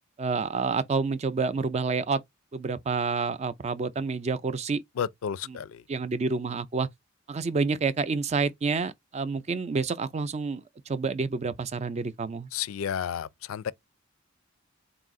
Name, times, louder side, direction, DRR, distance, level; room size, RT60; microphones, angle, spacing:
voice 1, 0.2-2.2 2.5-4.8 5.5-5.6 5.9-6.9 7.3-12.5, right 4 dB, 35° right, 0.4 m, -28 dB
voice 2, 5.0-5.8 12.5-13.7, left 8 dB, 85° left, 0.4 m, -32 dB
3.9 x 2.4 x 3.6 m
head